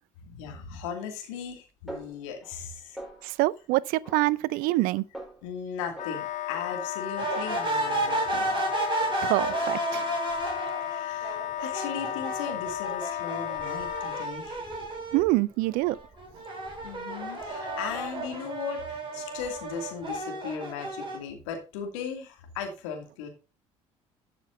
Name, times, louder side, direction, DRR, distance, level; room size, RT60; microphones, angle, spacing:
voice 1, 0.2-3.0 5.4-8.5 9.6-9.7 10.9-14.7 16.8-23.3, left 6 dB, 75° left, 2.6 m, -37 dB
Snare drum, 1.9-2.7 3.0-3.5 4.0-4.8 5.1-5.5 6.0-8.1 8.4-8.9 9.4-10.1, right 1 dB, ahead, 4.5 m, -45 dB
voice 2, 3.2-5.0 9.2-10.0 15.1-16.0, right 19 dB, 60° right, 0.5 m, -25 dB
Wind instrument woodwind instrument, 5.9-14.3, left 13 dB, 50° left, 0.5 m, -34 dB
sound 1, 7.2-15.3 15.7-21.2, right 2 dB, 30° right, 5.7 m, -32 dB
12.5 x 6.0 x 4.1 m
hypercardioid pair, 60°, 16 cm